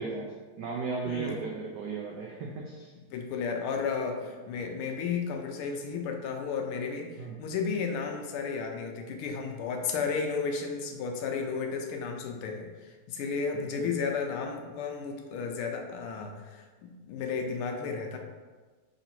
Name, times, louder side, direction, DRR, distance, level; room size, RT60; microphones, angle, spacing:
voice 1, 0.0-2.9 7.2-7.3 9.3-9.4 13.7-13.9, right 4 dB, 85° right, -1 dB, 0.9 m, -36 dB
voice 2, 1.1-1.4 3.1-18.2, left 5 dB, 80° left, 3 dB, 1.4 m, -33 dB
4.0 x 3.0 x 4.2 m, 1.3 s
omnidirectional pair, 2.4 m